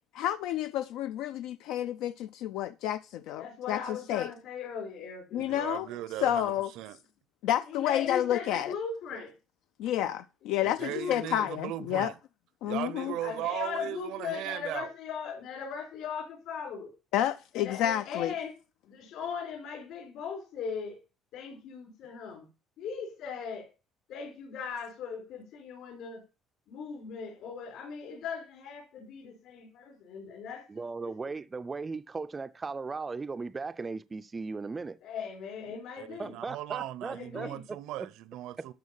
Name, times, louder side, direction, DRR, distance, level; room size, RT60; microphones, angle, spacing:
voice 1, 0.1-4.3 5.3-5.9 6.2-6.7 7.4-8.7 9.8-12.1 12.6-13.1 17.1-18.3, left 12 dB, 85° left, 0.5 m, -30 dB
voice 2, 3.4-5.5 5.8-6.0 7.6-9.3 10.6-11.5 13.2-16.9 17.5-18.5 18.9-21.0 21.3-22.4 22.8-23.7 24.1-26.2 26.7-31.1 35.0-36.3 37.1-37.6, left 6 dB, 65° left, 4.6 m, -39 dB
voice 3, 5.4-7.0 10.6-12.1 12.6-14.9 35.7-38.7, right 13 dB, 75° right, 0.7 m, -38 dB
voice 4, 30.7-35.0 36.2-37.8 38.6-38.7, right 4 dB, 15° right, 0.4 m, -37 dB
12.5 x 5.1 x 5.5 m
cardioid pair, 180°, 0 cm